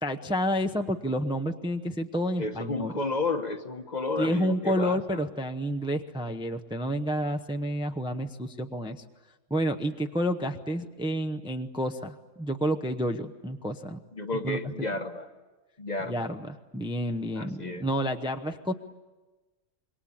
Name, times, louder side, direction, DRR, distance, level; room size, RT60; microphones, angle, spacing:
voice 1, 0.0-2.9 4.2-9.0 9.5-14.0 14.4-14.6 16.1-16.5 16.7-18.7, equal, 5° right, 5 dB, 0.7 m, -29 dB
voice 2, 2.4-5.2 14.1-15.3 15.8-16.3 17.4-17.9, left 3 dB, 35° left, 7 dB, 1.1 m, -32 dB
26.5 x 22.0 x 8.8 m, 1.2 s
omnidirectional pair, 1.3 m